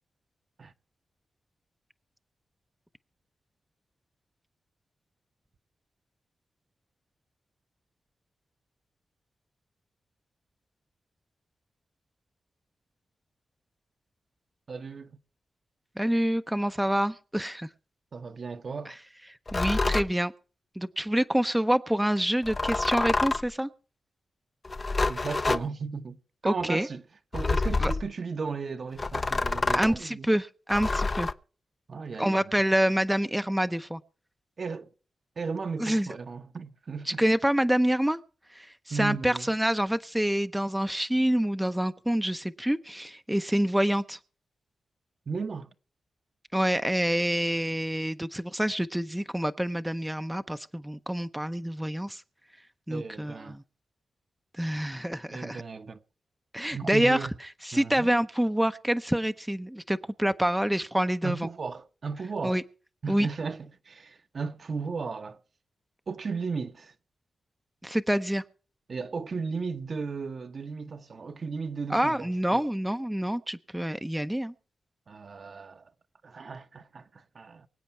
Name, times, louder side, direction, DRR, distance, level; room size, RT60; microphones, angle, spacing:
voice 1, 14.7-15.2 18.1-18.9 25.1-26.2 26.4-27.0 27.3-30.3 31.9-32.4 34.6-34.9 35.4-37.2 38.9-39.5 45.3-45.7 52.9-53.6 55.3-56.0 56.7-57.3 57.7-58.1 61.2-62.6 63.0-65.4 66.1-66.9 68.9-72.7 75.1-75.9 76.2-77.7, right 5 dB, 55° right, 0.9 m, -35 dB
voice 2, 16.0-17.7 18.9-19.0 19.5-20.3 20.8-23.7 26.4-26.9 27.8-27.9 29.7-31.3 32.2-34.0 35.8-36.1 37.1-38.2 38.5-44.2 46.5-52.2 52.9-53.6 54.5-55.6 56.5-57.3 57.6-61.5 62.4-62.6 63.1-63.3 67.8-68.4 71.9-74.5, equal, 5° right, 0.6 m, -27 dB
sound 1, 19.5-20.1 22.4-23.5 24.6-25.7 27.3-28.1 29.0-30.0 30.7-31.3, left 3 dB, 35° left, 0.6 m, -27 dB
24.0 x 8.2 x 4.4 m
cardioid pair, 80°, 0 cm